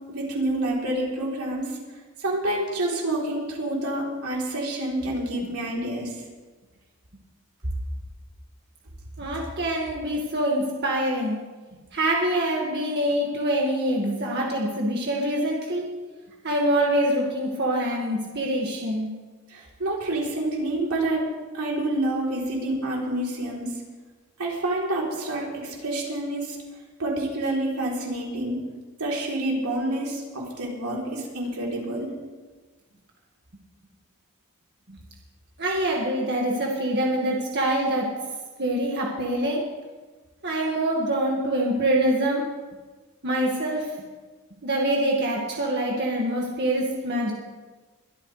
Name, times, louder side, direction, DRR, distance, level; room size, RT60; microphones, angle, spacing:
voice 1, 0.1-1.8 2.2-6.2 19.5-21.3 21.5-23.8 24.4-26.6 27.0-28.6 29.0-32.1, right 1 dB, 85° right, -3 dB, 3.6 m, -28 dB
voice 2, 9.2-11.4 11.9-15.9 16.4-19.1 35.6-38.1 38.6-39.6 40.4-42.4 43.2-43.9 44.6-47.3, right 1 dB, 50° right, -2 dB, 1.9 m, -25 dB
22.5 x 13.0 x 3.3 m, 1.3 s
head